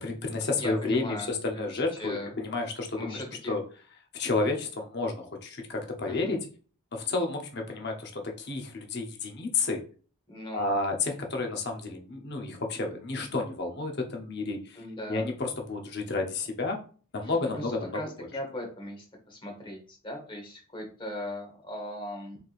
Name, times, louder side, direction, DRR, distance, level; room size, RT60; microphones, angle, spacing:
voice 1, 0.0-3.2 3.5-3.6 4.1-6.5 6.9-9.8 10.5-14.8 15.1-16.8 17.1-18.3, left 3 dB, 50° left, 2 dB, 0.8 m, -31 dB
voice 2, 0.6-2.3 3.0-3.6 6.0-6.4 10.3-10.7 14.8-15.3 17.5-22.4, left 1 dB, 20° left, 1 dB, 1.1 m, -38 dB
4.4 x 3.3 x 2.4 m, 0.41 s
head